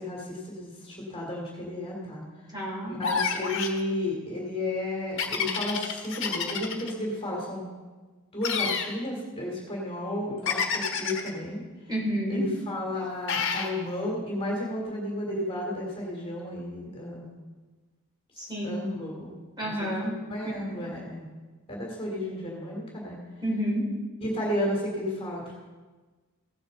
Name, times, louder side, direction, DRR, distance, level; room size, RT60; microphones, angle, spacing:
voice 1, 0.0-2.2 2.9-7.7 8.3-11.6 12.3-17.3 18.6-19.3 19.6-19.7 20.0-21.3 21.7-23.2 24.2-25.6, left 1 dB, 25° left, -2 dB, 2.6 m, -33 dB
voice 2, 2.5-3.0 11.9-12.4 18.4-18.8 19.6-20.1 20.8-20.9 23.4-23.8, equal, 20° right, -4 dB, 3.3 m, -29 dB
sound 1, 3.0-3.8 5.2-6.9 8.4-8.9 10.5-11.3 13.3-13.7, left 6 dB, 55° left, 1.5 m, -28 dB
16.0 x 9.0 x 3.9 m, 1.3 s
head